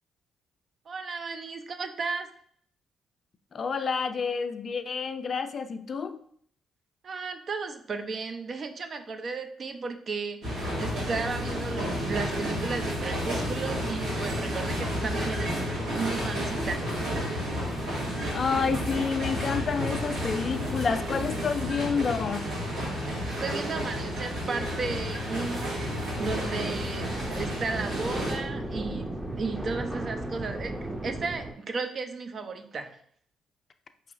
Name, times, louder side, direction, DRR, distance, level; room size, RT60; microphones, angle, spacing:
voice 1, 0.9-2.3 7.0-15.6 15.9-16.8 23.2-27.1 27.4-33.0, right 4 dB, 50° right, 7 dB, 0.5 m, -34 dB
voice 2, 3.5-6.2 18.3-22.4, left 5 dB, 50° left, 9 dB, 0.4 m, -29 dB
sound 1, 10.4-28.3, equal, 80° right, 1.5 m, -31 dB
sound 2, 26.1-31.5, right 1 dB, 15° right, 0.7 m, -35 dB
4.8 x 2.8 x 2.5 m, 0.63 s
hypercardioid pair, 55°, 0 cm